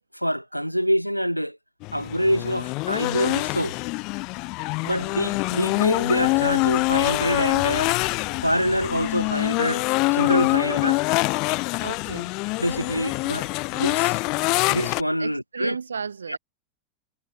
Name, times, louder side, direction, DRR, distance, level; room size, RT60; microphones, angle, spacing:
voice 1, 0.1-1.6 1.9-3.8 4.8-7.9 8.4-9.8 10.1-11.0 12.6-13.5 13.7-14.1 14.7-15.8 16.3-16.4, equal, 90° left, 0.9 m, -25 dB
sound 1, 1.8-15.0, left 26 dB, 40° left, 2.5 m, -25 dB
sound 2, 3.9-9.9, left 10 dB, 65° left, 6.0 m, -45 dB
voice 2, 11.8-12.3 15.2-16.4, right 6 dB, 75° right, 5.7 m, -33 dB
figure-of-eight pair, 90°, 0 cm